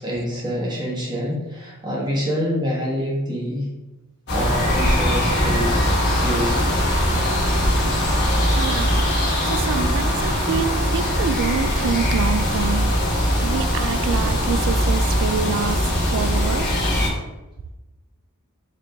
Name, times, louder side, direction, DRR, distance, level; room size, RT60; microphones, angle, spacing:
voice 1, 0.0-3.7 4.3-5.8 6.2-6.7, equal, 20° right, -4 dB, 1.0 m, -26 dB
sound 1, 4.3-17.1, equal, 50° left, 1.1 m, -21 dB
voice 2, 8.5-9.1 9.5-16.7, right 6 dB, 55° right, 9 dB, 0.3 m, -27 dB
4.1 x 2.9 x 3.4 m, 1.0 s
head